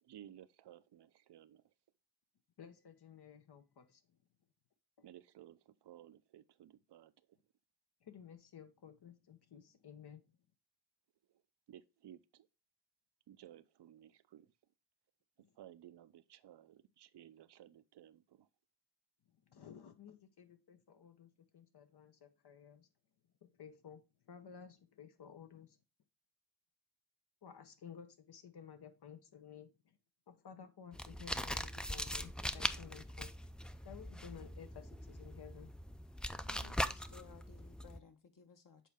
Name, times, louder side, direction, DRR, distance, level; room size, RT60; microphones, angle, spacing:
voice 1, 0.0-1.7 5.0-7.4 11.7-12.5 13.3-14.5 15.6-18.5, right 11 dB, 80° right, 0.6 m, -57 dB
voice 2, 2.6-4.2 5.0-5.1 8.0-10.3 15.4-15.5 19.3-22.9 23.4-25.8 27.4-30.0 30.3-33.3 33.8-35.7, left 8 dB, 70° left, 1.0 m, -55 dB
sound 1, 30.9-38.0, equal, ahead, 0.3 m, -41 dB
voice 3, 36.4-38.9, left 5 dB, 50° left, 1.1 m, -59 dB
7.5 x 4.1 x 3.5 m
cardioid pair, 75°, 40 cm